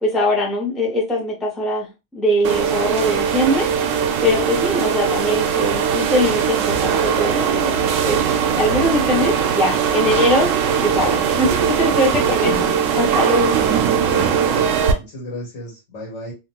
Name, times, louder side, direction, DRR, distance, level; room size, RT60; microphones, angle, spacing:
voice 1, 0.0-1.9 2.1-3.7 4.2-7.7 8.0-8.2 8.5-10.5 10.8-13.6, equal, ahead, -2 dB, 0.5 m, -21 dB
sound 1, 2.4-14.9, right 7 dB, 85° right, 0.9 m, -20 dB
voice 2, 13.7-16.3, equal, 75° left, -3 dB, 1.6 m, -35 dB
2.8 x 2.4 x 2.8 m, 0.26 s
omnidirectional pair, 1.3 m